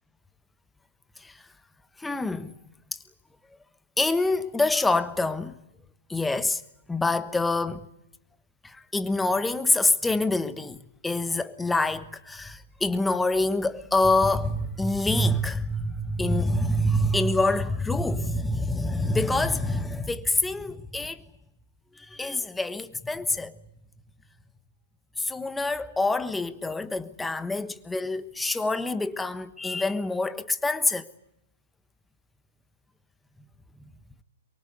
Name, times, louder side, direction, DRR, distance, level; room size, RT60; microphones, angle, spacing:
voice 1, 2.0-2.5 4.0-5.5 6.1-6.6 6.9-7.9 8.6-21.3 22.0-23.5 25.2-31.1, left 2 dB, 5° left, 1.2 m, -26 dB
23.5 x 23.5 x 8.2 m
hypercardioid pair, 130°, 0 cm